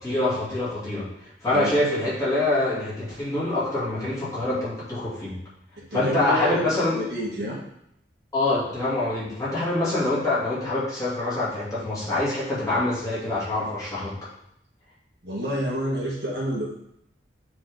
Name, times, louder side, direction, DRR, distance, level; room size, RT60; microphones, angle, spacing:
voice 1, 0.0-5.4 5.9-7.0 8.3-14.2, left 2 dB, 20° left, -9 dB, 2.7 m, -25 dB
voice 2, 5.9-7.6 15.2-16.7, equal, 65° right, -5 dB, 1.7 m, -28 dB
7.4 x 4.4 x 3.8 m, 0.76 s
head